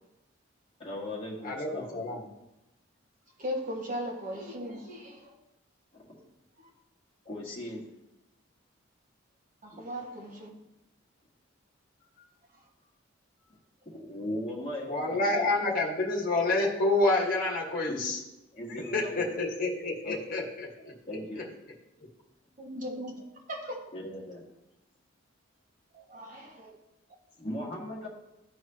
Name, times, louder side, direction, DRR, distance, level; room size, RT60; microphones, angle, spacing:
voice 1, 0.8-2.0 5.9-6.3 7.3-7.8 9.7-9.9 13.9-15.7 17.9-18.0 18.5-19.4 20.0-20.2 21.1-21.5 23.9-24.5 27.4-28.1, left 1 dB, 30° left, 1.8 m, -38 dB
voice 2, 1.4-2.3 14.9-18.2 18.7-20.9, left 2 dB, 45° left, 1.6 m, -28 dB
voice 3, 3.4-5.3 9.6-10.6 22.6-23.2 23.5-23.8 25.9-26.8, equal, 40° right, 1.7 m, -37 dB
13.5 x 4.6 x 2.9 m
head